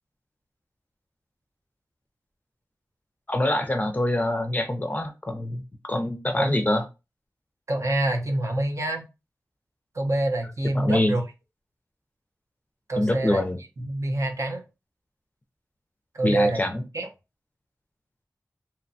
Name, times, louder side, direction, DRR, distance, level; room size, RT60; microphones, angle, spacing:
voice 1, 3.3-5.6 5.9-6.8 10.7-11.1 13.0-13.6 16.2-16.8, left 1 dB, 25° left, 6 dB, 0.5 m, -25 dB
voice 2, 7.7-9.1 9.9-11.2 12.9-13.4 13.8-14.6 16.1-16.6 16.9-17.1, right 1 dB, 55° right, 2 dB, 0.6 m, -26 dB
2.8 x 2.2 x 2.6 m, 0.27 s
wide cardioid pair, 75°, 6 cm